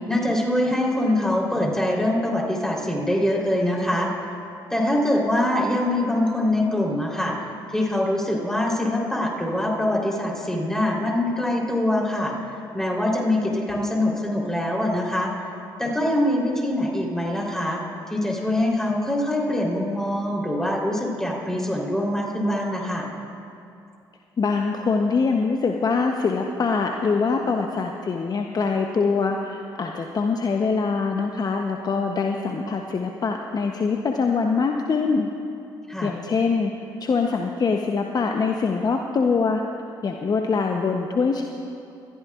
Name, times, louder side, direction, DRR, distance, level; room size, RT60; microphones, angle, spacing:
voice 1, 0.1-4.1 4.7-12.3 12.7-15.3 15.8-17.8 18.1-23.1 35.9-36.1, left 1 dB, 5° left, -3 dB, 3.5 m, -24 dB
voice 2, 24.4-35.3 36.0-36.7 37.0-39.6 40.0-41.4, left 4 dB, 40° left, 3 dB, 0.8 m, -23 dB
21.0 x 14.0 x 2.4 m, 2.7 s
hypercardioid pair, 55°, 10 cm